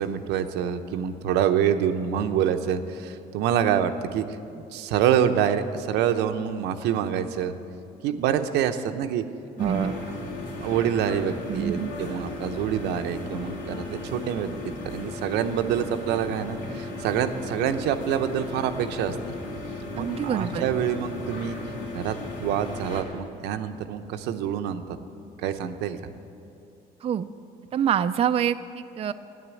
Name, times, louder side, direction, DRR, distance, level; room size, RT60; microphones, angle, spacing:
voice 1, 0.0-4.4 4.7-7.5 8.0-9.2 9.6-9.9 10.6-14.5 14.8-19.2 20.0-21.6 21.9-22.2 22.4-25.0 25.4-26.0, right 9 dB, 85° right, 8 dB, 0.7 m, -26 dB
sound 1, 9.6-23.0, left 2 dB, 65° left, 2.8 m, -36 dB
voice 2, 9.6-10.0 11.5-11.9 20.0-20.7 27.0-27.3 27.7-29.1, right 9 dB, 35° right, 10 dB, 0.4 m, -26 dB
11.0 x 9.4 x 8.3 m, 2.7 s
cardioid pair, 110°, 17 cm